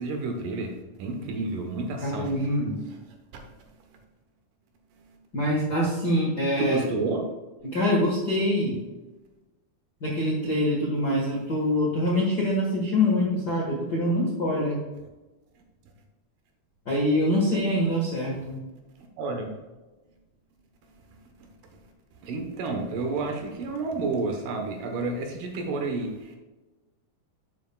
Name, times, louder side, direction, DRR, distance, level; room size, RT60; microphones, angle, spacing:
voice 1, 0.0-2.3 2.9-3.0 3.3-3.7 6.6-7.2 19.0-19.5 21.4-21.5 22.2-26.4, right 3 dB, 70° right, 3 dB, 2.6 m, -30 dB
voice 2, 2.0-2.8 5.3-6.8 7.6-8.8 10.0-14.8 16.8-18.6, left 1 dB, 50° left, -4 dB, 1.2 m, -25 dB
11.0 x 7.2 x 2.3 m, 1.1 s
omnidirectional pair, 4.1 m